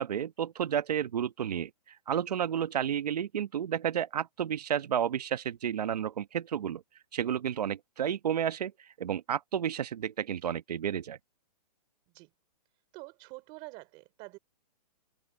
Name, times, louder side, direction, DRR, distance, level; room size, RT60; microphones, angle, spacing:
voice 1, 0.0-6.8 7.1-11.2, right 9 dB, 70° right, 1.2 m, -31 dB
voice 2, 12.9-14.4, right 23 dB, 25° right, 3.3 m, -46 dB
hypercardioid pair, 165°, 21 cm